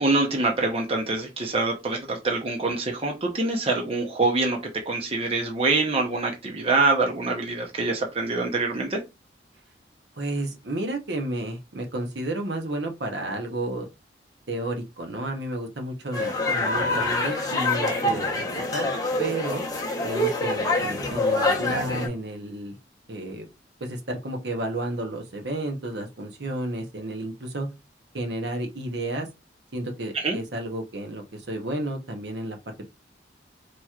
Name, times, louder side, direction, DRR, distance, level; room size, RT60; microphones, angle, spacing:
voice 1, 0.0-9.0 30.1-30.4, right 3 dB, 30° right, 0.7 m, -25 dB
voice 2, 10.1-13.9 14.5-18.4 18.7-18.9 19.2-19.6 20.0-22.8 23.1-23.5 23.8-27.7 28.1-29.3 29.7-32.8, right 1 dB, 70° right, 0.9 m, -31 dB
sound 1, 16.1-22.1, left 2 dB, 20° left, 0.9 m, -25 dB
4.4 x 3.0 x 2.4 m
head